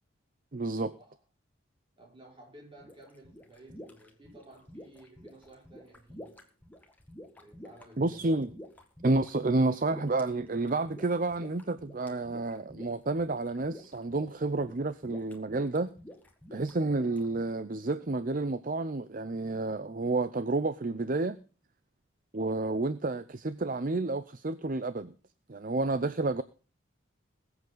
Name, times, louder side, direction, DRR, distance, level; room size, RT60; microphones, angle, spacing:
voice 1, 0.5-0.9 8.0-8.5 9.0-15.9 16.5-21.4 22.3-25.1 25.5-26.4, right 2 dB, 40° right, 0.6 m, -30 dB
voice 2, 2.0-6.3 7.4-8.3, right 1 dB, 25° right, 5.6 m, -54 dB
sound 1, 2.8-17.4, left 1 dB, 10° left, 1.8 m, -50 dB
21.0 x 8.0 x 3.9 m
head